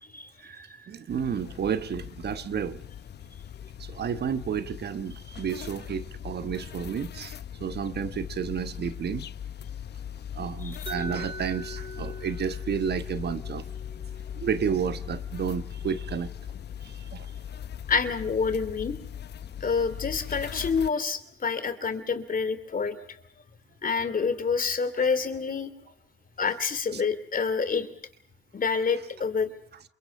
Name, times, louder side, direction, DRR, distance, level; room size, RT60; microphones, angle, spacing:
voice 1, 0.4-2.8 3.8-9.3 10.3-13.6 14.3-16.3 16.8-17.3 26.9-27.0, right 7 dB, 60° right, 1.2 m, -31 dB
sound 1, 1.1-20.9, left 9 dB, 65° left, 0.9 m, -39 dB
Mallet percussion, 10.9-16.7, equal, 25° right, 4.8 m, -43 dB
voice 2, 17.9-19.0 19.6-23.2 23.8-25.7 26.4-27.9 28.5-29.5, left 5 dB, 50° left, 2.8 m, -27 dB
28.0 x 23.0 x 5.5 m
supercardioid pair, 55°, 19 cm